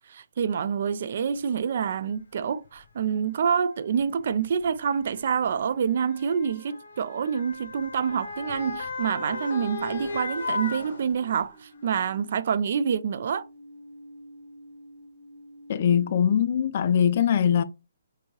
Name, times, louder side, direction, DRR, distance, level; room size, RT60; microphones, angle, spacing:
voice 1, 0.1-13.4, right 7 dB, 55° right, 0.3 m, -27 dB
Motor vehicle (road) / Siren, 1.6-1.7 2.6-2.8 3.9-11.5 12.0-12.1, left 3 dB, 65° left, 1.0 m, -36 dB
sound 1, 9.0-16.6, right 1 dB, 35° right, 1.0 m, -49 dB
voice 2, 15.7-17.6, left 8 dB, 45° left, 0.4 m, -22 dB
4.6 x 2.7 x 3.0 m
hypercardioid pair, 160°, 0 cm